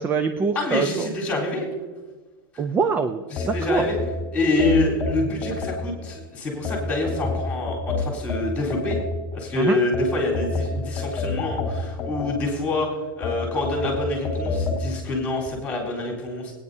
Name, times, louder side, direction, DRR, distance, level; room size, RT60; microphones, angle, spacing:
voice 1, 0.0-1.1 2.6-3.8 9.5-9.8, right 5 dB, 15° right, 9 dB, 0.4 m, -24 dB
voice 2, 0.6-1.7 3.3-4.0 4.3-9.0 9.3-12.9 13.2-16.5, left 2 dB, 10° left, -3 dB, 3.8 m, -26 dB
sound 1, 3.4-6.1 6.6-9.4 9.9-12.7 13.2-14.9, left 4 dB, 25° left, 1.3 m, -28 dB
20.0 x 9.5 x 2.8 m, 1.3 s
supercardioid pair, 150°, 12 cm